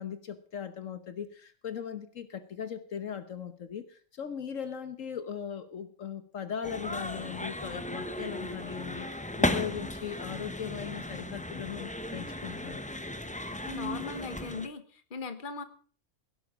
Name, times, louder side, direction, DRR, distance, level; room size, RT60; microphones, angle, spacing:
voice 1, 0.0-9.1 9.4-12.8, left 8 dB, 65° left, 11 dB, 1.4 m, -39 dB
sound 1, 6.6-14.7, left 1 dB, 5° left, 0.7 m, -35 dB
voice 2, 13.6-15.6, left 4 dB, 40° left, 10 dB, 1.4 m, -38 dB
17.0 x 11.5 x 5.1 m, 0.43 s
omnidirectional pair, 1.4 m